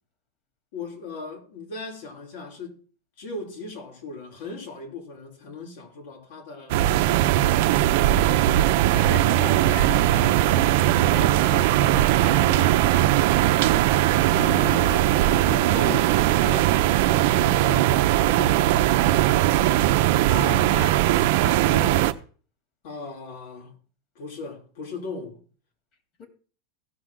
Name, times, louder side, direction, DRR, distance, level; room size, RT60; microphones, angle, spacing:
voice 1, 0.7-2.8 3.2-7.2 14.3-15.1 15.4-19.1 22.8-23.7 24.2-25.4, left 3 dB, 70° left, 4.2 m, -37 dB
sound 1, 6.7-22.1, right 14 dB, 65° right, 0.7 m, -20 dB
voice 2, 8.9-13.2 20.3-22.0 26.2-26.3, left 5 dB, 45° left, 2.9 m, -38 dB
17.0 x 6.1 x 3.8 m
supercardioid pair, 135°, 0 cm